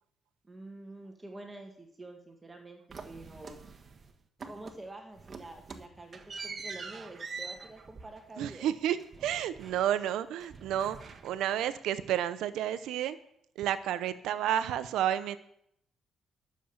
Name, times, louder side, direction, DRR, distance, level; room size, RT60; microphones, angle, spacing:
voice 1, 0.5-3.6 4.4-8.7, right 2 dB, 20° right, 3 dB, 1.8 m, -47 dB
sound 1, 2.9-4.1 4.4-4.9 5.2-10.1 10.4-11.7, right 4 dB, 40° right, 1.4 m, -45 dB
voice 2, 8.4-13.2 13.6-15.4, right 11 dB, 85° right, 14 dB, 0.7 m, -31 dB
11.5 x 7.1 x 7.2 m, 0.71 s
cardioid pair, 90°, 0 cm